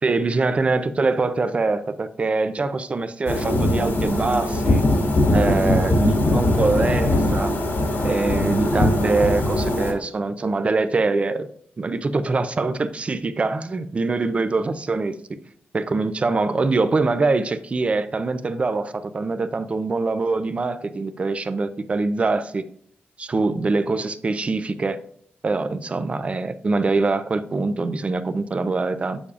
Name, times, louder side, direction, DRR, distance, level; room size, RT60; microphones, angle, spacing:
voice 1, 0.0-4.8 5.3-7.5 8.0-11.5 11.8-15.2 15.7-22.6 23.2-25.0 25.4-29.2, right 3 dB, 30° right, 0.5 m, -23 dB
sound 1, 3.3-9.9, left 1 dB, 65° left, 1.8 m, -21 dB
8.3 x 7.0 x 2.4 m
wide cardioid pair, 150°, 4 cm